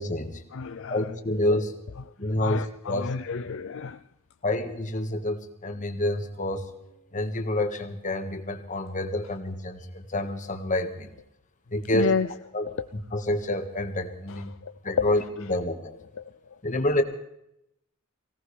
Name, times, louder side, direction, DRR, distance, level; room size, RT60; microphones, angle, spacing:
voice 1, 0.0-0.4 0.9-1.8 2.2-3.1 4.4-6.8 7.1-11.1 11.7-12.1 12.5-12.7 12.9-14.5 14.8-15.2 15.5-15.9 16.6-17.0, left 1 dB, 35° left, 6 dB, 1.7 m, -28 dB
voice 2, 0.5-1.1 2.4-4.0 11.9-12.3 12.7-12.9 14.3-15.1 16.2-16.3, left 5 dB, 60° left, 11 dB, 0.5 m, -30 dB
24.0 x 17.5 x 3.4 m, 0.81 s
head